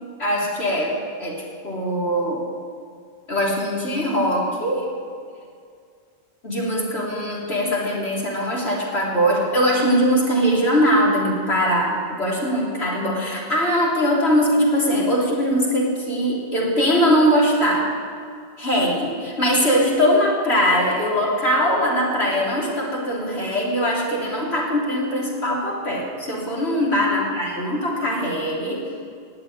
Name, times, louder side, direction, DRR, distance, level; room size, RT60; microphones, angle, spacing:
voice 1, 0.2-2.4 3.3-4.9 6.4-17.9 18.6-28.8, equal, 85° left, -3 dB, 3.7 m, -21 dB
20.0 x 7.6 x 9.3 m, 2.2 s
omnidirectional pair, 1.1 m